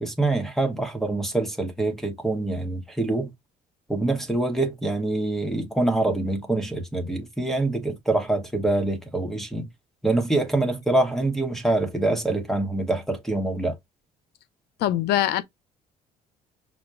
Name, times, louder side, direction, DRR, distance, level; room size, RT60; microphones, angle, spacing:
voice 1, 0.0-3.3 3.9-9.7 10.0-13.7, right 2 dB, ahead, 1.1 m, -25 dB
voice 2, 14.8-15.4, left 13 dB, 75° left, 0.6 m, -22 dB
6.0 x 2.2 x 2.4 m
cardioid pair, 110°, 17 cm